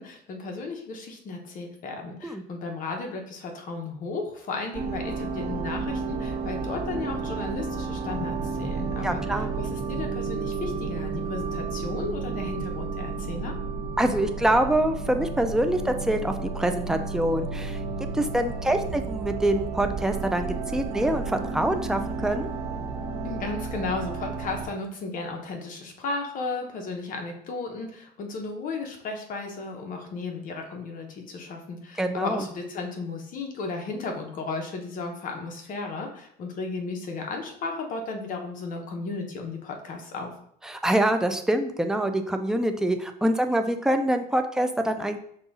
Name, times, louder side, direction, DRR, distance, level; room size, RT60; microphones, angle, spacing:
voice 1, 0.0-13.5 23.2-40.3, left 3 dB, 45° left, 3 dB, 0.9 m, -34 dB
sound 1, 4.7-24.7, right 4 dB, 60° right, 1.2 m, -32 dB
voice 2, 9.0-9.5 14.0-22.5 32.0-32.4 40.6-45.2, right 1 dB, 5° right, 6 dB, 0.3 m, -25 dB
5.4 x 2.3 x 4.0 m, 0.69 s
cardioid pair, 120°, 19 cm